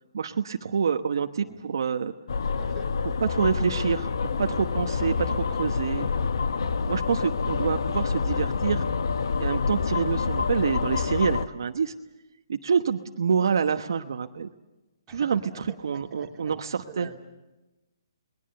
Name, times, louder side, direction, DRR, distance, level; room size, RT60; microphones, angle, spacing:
voice 1, 0.1-2.1 3.2-4.1 4.4-6.1 6.9-8.9 9.4-11.9 12.5-14.5 15.1-15.4 15.8-17.1, right 6 dB, 60° right, 6 dB, 1.1 m, -27 dB
sound 1, 2.3-11.5, left 5 dB, 70° left, 1.3 m, -27 dB
voice 2, 2.4-2.9 15.1-16.5 16.8-17.1, right 5 dB, 15° right, -2 dB, 3.1 m, -46 dB
28.5 x 21.0 x 6.8 m, 1.0 s
hypercardioid pair, 170°, 2 cm